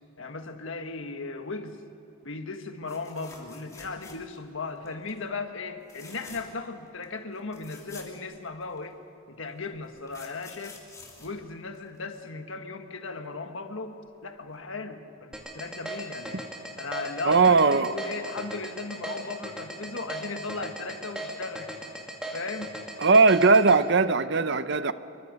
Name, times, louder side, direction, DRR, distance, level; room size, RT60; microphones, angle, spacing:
voice 1, 0.2-1.8 2.2-9.0 9.3-10.8 11.2-16.5 16.8-21.7 22.3-22.8, left 3 dB, 60° left, 6 dB, 1.6 m, -37 dB
sound 1, 2.9-4.5 4.8-5.2 5.8-6.7 7.0-7.1 7.3-8.8 9.6-12.2 14.1-14.2 14.5-14.6, left 3 dB, 15° left, 3.1 m, -49 dB
sound 2, 15.3-23.7, right 1 dB, 5° right, 2.4 m, -37 dB
voice 2, 17.2-17.9 23.0-24.9, right 4 dB, 55° right, 13 dB, 0.7 m, -19 dB
26.5 x 24.0 x 5.4 m, 2.9 s
head